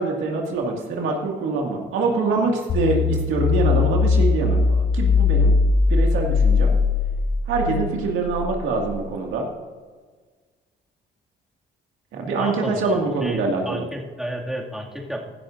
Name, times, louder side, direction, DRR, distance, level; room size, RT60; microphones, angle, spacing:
voice 1, 0.0-5.6 5.9-6.7 7.5-9.5 12.1-13.9, right 3 dB, 85° right, 1 dB, 2.0 m, -24 dB
sound 1, 2.7-8.9, left 4 dB, 65° left, 2.3 m, -20 dB
voice 2, 12.4-13.4 13.7-15.3, right 1 dB, ahead, -2 dB, 2.2 m, -32 dB
16.0 x 11.5 x 2.6 m, 1.5 s
cardioid pair, 90°, 20 cm